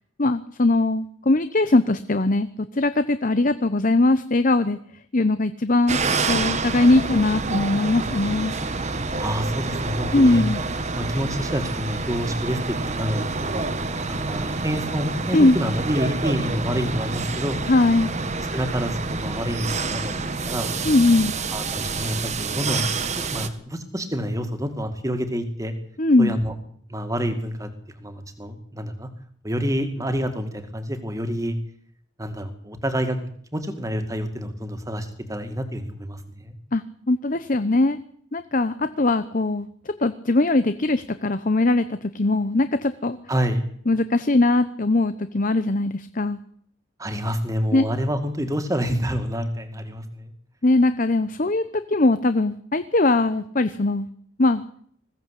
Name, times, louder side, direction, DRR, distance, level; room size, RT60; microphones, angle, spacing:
voice 1, 0.2-4.8 5.1-6.0 6.3-8.5 10.1-10.6 15.3-15.6 17.7-18.1 20.8-21.3 26.0-26.4 36.7-38.0 38.3-39.7 40.0-43.2 43.9-46.4 47.7-47.8 50.6-54.1 54.4-54.6, left 2 dB, 40° left, 12 dB, 0.8 m, -20 dB
sound 1, 5.9-23.5, right 3 dB, 35° right, 1.5 m, -28 dB
voice 2, 9.2-10.4 11.0-13.7 14.1-17.6 18.5-20.1 20.4-20.7 21.5-22.9 23.3-25.7 26.2-26.5 26.9-27.7 28.0-29.1 29.4-31.6 32.2-33.2 33.5-36.6 43.3-43.6 47.0-50.3, equal, 15° right, 8 dB, 2.3 m, -28 dB
21.0 x 16.0 x 8.4 m, 0.63 s
head